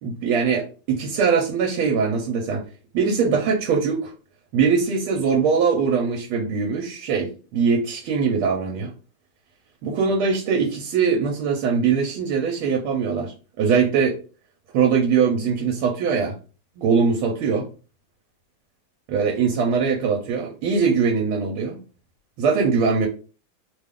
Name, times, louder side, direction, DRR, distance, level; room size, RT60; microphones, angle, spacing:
voice 1, 0.0-2.6 2.9-4.1 4.5-8.9 9.8-14.2 14.7-16.4 16.8-17.7 19.1-21.8 22.4-23.1, right 5 dB, 85° right, 1 dB, 1.5 m, -22 dB
3.4 x 2.3 x 3.5 m, 0.36 s
omnidirectional pair, 2.2 m